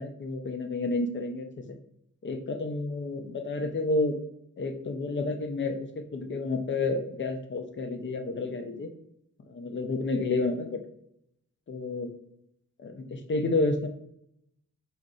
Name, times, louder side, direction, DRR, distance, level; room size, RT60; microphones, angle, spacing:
voice 1, 0.0-1.5 2.2-4.1 4.6-8.9 9.5-10.8 11.7-12.1 12.8-13.9, left 2 dB, 40° left, 6 dB, 0.5 m, -30 dB
4.1 x 2.5 x 3.7 m, 0.73 s
wide cardioid pair, 135°, 30 cm